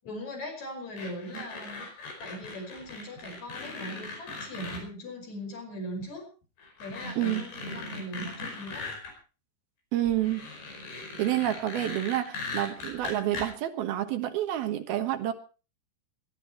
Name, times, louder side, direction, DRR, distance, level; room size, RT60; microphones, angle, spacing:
voice 1, 0.0-1.9 2.2-6.3 6.8-8.9, equal, 40° left, 4 dB, 6.6 m, -40 dB
sound 1, 1.0-4.8 6.0-6.1 6.6-9.1 10.1-13.5, left 3 dB, 65° left, 7.1 m, -39 dB
voice 2, 7.2-7.5 9.9-10.5 11.2-15.3, right 13 dB, 65° right, 9 dB, 3.0 m, -29 dB
20.5 x 13.5 x 4.4 m, 0.35 s
omnidirectional pair, 5.1 m